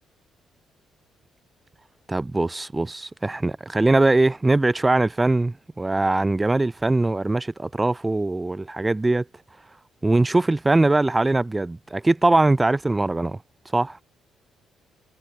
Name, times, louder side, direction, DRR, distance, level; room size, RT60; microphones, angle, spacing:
voice 1, 2.1-9.2 10.0-13.4 13.7-14.0, right 2 dB, 15° right, 1.7 m, -21 dB
cardioid pair, 90°, 0 cm